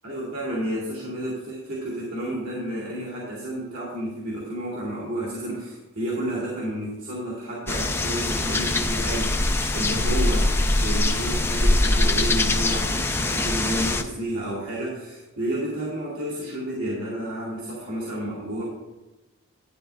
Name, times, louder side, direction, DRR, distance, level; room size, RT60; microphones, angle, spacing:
voice 1, 0.0-10.5 10.8-18.6, right 1 dB, 75° right, -6 dB, 2.5 m, -31 dB
sound 1, 7.7-14.0, left 2 dB, 10° left, 0.4 m, -23 dB
11.5 x 10.5 x 2.5 m, 1.1 s
head